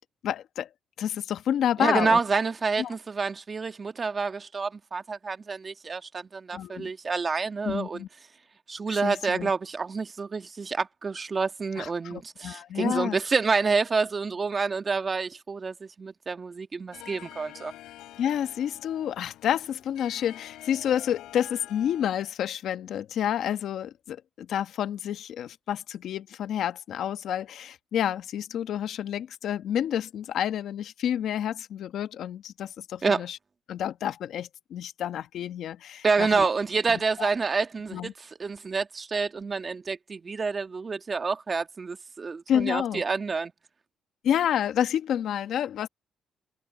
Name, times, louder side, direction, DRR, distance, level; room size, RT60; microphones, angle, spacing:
voice 1, 0.2-0.7 1.0-2.2 2.8-2.9 6.5-6.9 7.6-8.1 8.9-9.5 11.8-13.2 18.2-33.4 33.7-36.5 37.2-37.3 37.9-38.1 42.5-43.0 44.2-45.9, left 10 dB, 75° left, 1.2 m, -29 dB
voice 2, 1.8-8.0 8.7-17.7 33.0-33.2 36.0-43.5, right 4 dB, 35° right, 1.5 m, -28 dB
Harp, 16.9-22.4, left 14 dB, 90° left, 5.1 m, -47 dB
cardioid pair, 90°, 0 cm